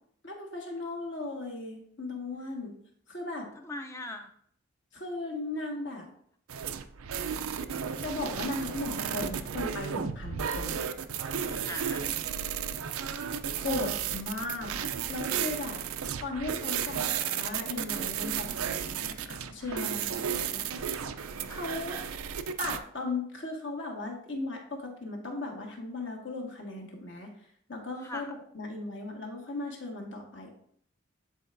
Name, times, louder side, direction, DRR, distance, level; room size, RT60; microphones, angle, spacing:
voice 1, 0.2-2.7 3.1-3.5 4.9-6.1 8.0-10.8 13.5-14.8 15.1-15.8 16.2-21.0 21.5-22.0 22.6-27.3 27.7-30.5, left 2 dB, 60° left, 1 dB, 1.6 m, -37 dB
voice 2, 3.5-4.3 11.5-12.1 19.6-19.8 21.5-22.0 28.0-28.3, left 2 dB, 15° left, 5 dB, 0.5 m, -41 dB
sound 1, 6.5-22.8, right 8 dB, 90° right, 0.5 m, -33 dB
11.0 x 4.6 x 2.6 m, 0.64 s
head